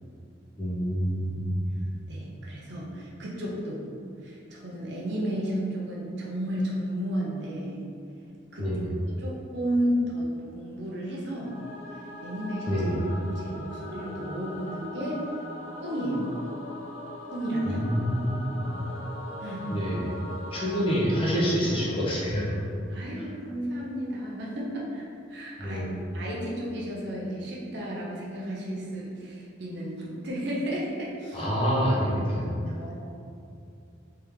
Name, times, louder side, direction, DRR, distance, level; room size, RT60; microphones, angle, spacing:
voice 1, 0.6-1.7 8.6-8.9 12.7-13.0 17.7-18.8 19.7-20.0 20.5-22.6 25.6-25.9 31.3-32.6, equal, 30° left, -6 dB, 0.7 m, -27 dB
voice 2, 2.1-3.8 4.2-7.8 8.5-8.7 9.1-11.6 11.9-12.8 13.1-15.3 15.8-16.3 17.3-17.9 19.4-19.8 22.9-31.5 32.7-32.9, equal, 60° right, -4 dB, 0.7 m, -33 dB
Singing / Musical instrument, 11.3-22.6, left 1 dB, 90° left, 0.7 m, -41 dB
3.5 x 3.4 x 3.0 m, 2.5 s
head